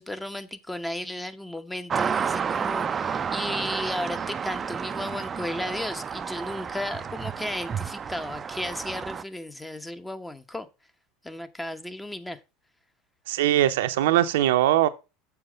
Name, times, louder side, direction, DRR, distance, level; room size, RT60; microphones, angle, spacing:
voice 1, 0.0-10.7 11.2-12.4, left 1 dB, 10° left, 1.0 m, -34 dB
sound 1, 1.9-9.2, right 6 dB, 30° right, 0.5 m, -31 dB
voice 2, 13.3-14.9, right 13 dB, 75° right, 0.7 m, -21 dB
7.1 x 6.3 x 5.1 m
hypercardioid pair, 85°, 0 cm